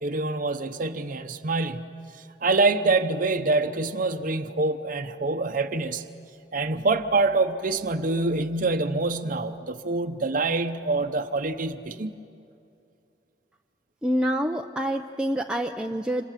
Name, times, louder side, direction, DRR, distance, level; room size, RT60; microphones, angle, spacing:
voice 1, 0.0-1.9 2.4-6.0 6.5-12.1, right 3 dB, 50° right, 6 dB, 0.8 m, -25 dB
voice 2, 14.0-16.2, equal, 5° right, 2 dB, 0.6 m, -27 dB
27.5 x 26.0 x 7.5 m, 2.6 s
head